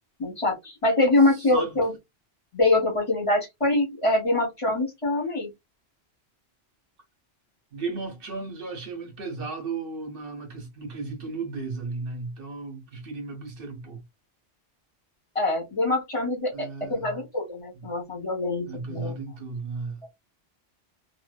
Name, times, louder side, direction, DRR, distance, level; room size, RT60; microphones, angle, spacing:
voice 1, 0.2-1.9 2.5-5.5 15.3-19.1, left 2 dB, 30° left, 1.0 m, -24 dB
voice 2, 1.3-1.7 7.7-14.0 16.5-17.2 17.7-17.9 18.7-20.0, right 3 dB, 60° right, 1.1 m, -35 dB
2.6 x 2.1 x 2.3 m
omnidirectional pair, 1.1 m